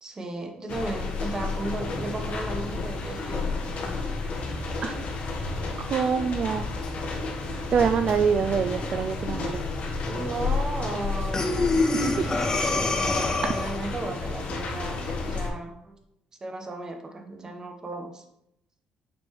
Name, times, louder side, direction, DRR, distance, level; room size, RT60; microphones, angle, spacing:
voice 1, 0.0-3.8 10.1-11.9 13.4-16.0 16.4-18.2, right 2 dB, 25° right, 3 dB, 1.2 m, -35 dB
sound 1, 0.7-15.5, left 3 dB, 55° left, 1.3 m, -31 dB
voice 2, 5.9-6.6 7.7-9.6 11.9-12.3, right 6 dB, 50° right, 8 dB, 0.3 m, -25 dB
Breathing, 11.3-13.9, left 3 dB, 25° left, 0.8 m, -25 dB
7.3 x 4.3 x 3.2 m, 0.77 s
cardioid pair, 105°, 3 cm